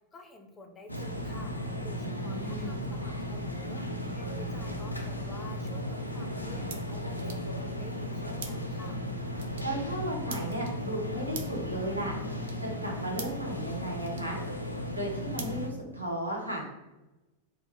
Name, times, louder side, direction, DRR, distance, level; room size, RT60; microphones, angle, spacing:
voice 1, 0.1-1.5 1.8-3.8 4.1-9.0, left 2 dB, 20° left, 3 dB, 0.4 m, -50 dB
sound 1, 0.9-15.7, left 1 dB, 90° left, 0.3 m, -35 dB
voice 2, 2.0-2.8 9.6-12.2 12.6-14.4 14.9-16.7, right 1 dB, 85° right, -2 dB, 0.7 m, -35 dB
sound 2, 4.9-16.4, right 5 dB, 65° right, 0.3 m, -49 dB
2.2 x 2.0 x 3.1 m, 1.1 s
figure-of-eight pair, 90°, 0 cm